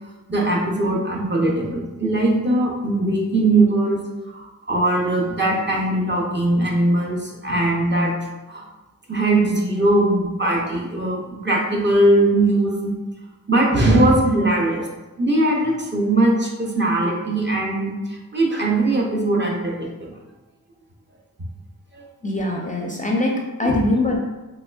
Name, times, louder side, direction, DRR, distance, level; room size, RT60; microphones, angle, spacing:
voice 1, 0.3-4.0 4.3-8.2 8.5-8.7 9.1-12.9 13.5-14.9 15.2-20.2 21.9-22.0 23.6-23.8, right 2 dB, 30° right, -1 dB, 0.6 m, -20 dB
voice 2, 22.2-24.2, left 2 dB, 20° left, -1 dB, 0.4 m, -22 dB
3.4 x 3.0 x 2.3 m, 1.1 s
cardioid pair, 60°, 35 cm